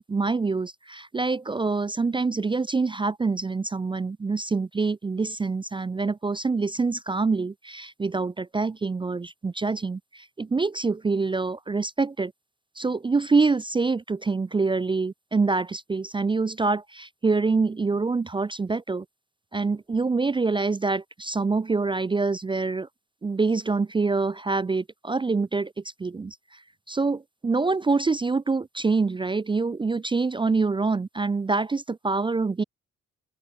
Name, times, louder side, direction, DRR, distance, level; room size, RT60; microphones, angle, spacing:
voice 1, 0.0-12.3 12.8-19.0 19.5-22.9 23.2-25.7 26.0-26.6 26.9-32.6, right 4 dB, 15° right, 0.4 m, -25 dB
open air
cardioid pair, 90°, 30 cm